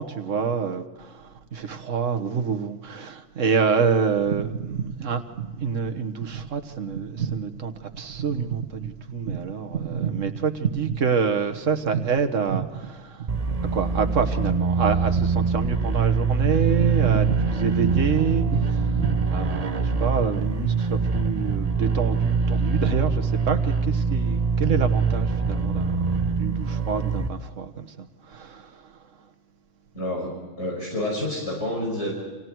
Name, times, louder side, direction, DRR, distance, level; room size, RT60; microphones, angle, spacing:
voice 1, 0.0-29.0, right 6 dB, 80° right, 7 dB, 1.7 m, -27 dB
sound 1, 13.3-27.3, right 4 dB, 35° right, 1.0 m, -24 dB
voice 2, 29.9-30.3 30.6-32.1, left 1 dB, 65° left, -2 dB, 6.3 m, -28 dB
29.5 x 26.5 x 4.7 m, 1.3 s
omnidirectional pair, 1.3 m